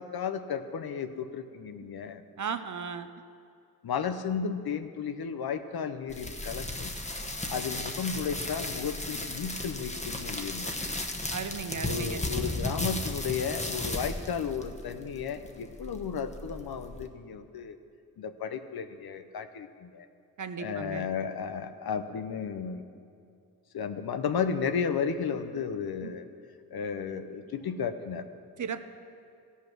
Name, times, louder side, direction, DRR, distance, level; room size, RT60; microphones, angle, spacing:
voice 1, 0.0-2.2 3.8-6.9 7.5-10.7 11.8-17.8 18.2-20.1 20.6-22.8 23.7-26.3 26.7-28.3, left 6 dB, 85° left, 9 dB, 0.7 m, -33 dB
voice 2, 2.4-3.1 11.3-12.2 20.4-21.1 26.0-26.1 28.6-28.8, right 6 dB, 55° right, 10 dB, 0.7 m, -35 dB
sound 1, 6.1-17.1, left 2 dB, 20° left, 1.1 m, -35 dB
15.5 x 5.6 x 6.1 m, 2.5 s
cardioid pair, 45°, 36 cm